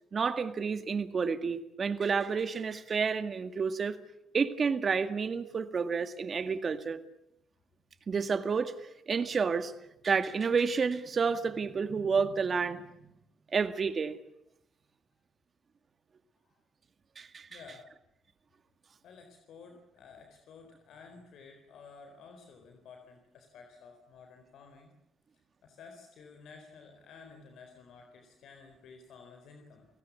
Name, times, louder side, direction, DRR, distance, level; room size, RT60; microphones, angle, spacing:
voice 1, 0.1-4.0 4.3-7.0 8.1-8.7 9.1-9.7 10.0-13.1 13.5-14.2 17.2-17.5, right 5 dB, 45° right, 10 dB, 2.0 m, -30 dB
voice 2, 17.5-17.9 19.0-24.9 25.6-29.9, left 5 dB, 75° left, 4 dB, 4.1 m, -53 dB
30.0 x 18.0 x 8.4 m, 0.84 s
cardioid pair, 90°, 0 cm